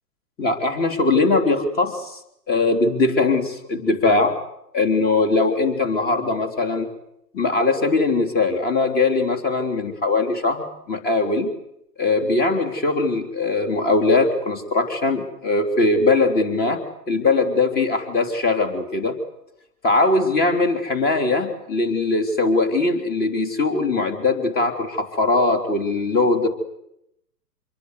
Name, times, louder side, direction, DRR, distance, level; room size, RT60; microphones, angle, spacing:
voice 1, 0.4-2.2 2.5-4.4 4.7-6.9 7.3-11.5 12.0-16.8 17.1-19.1 19.8-26.5, left 3 dB, 20° left, 6 dB, 3.6 m, -20 dB
26.5 x 22.5 x 8.3 m, 0.80 s
hypercardioid pair, 135°, 49 cm